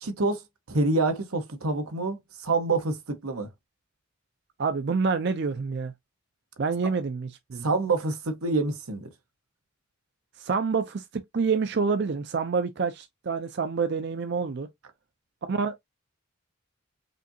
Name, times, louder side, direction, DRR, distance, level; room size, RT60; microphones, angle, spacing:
voice 1, 0.0-3.5 7.6-9.1, right 3 dB, 90° right, 1.0 m, -27 dB
voice 2, 4.6-5.9 6.6-7.6 10.4-14.7 15.4-15.9, right 5 dB, 50° right, 0.4 m, -27 dB
5.0 x 2.7 x 2.6 m
head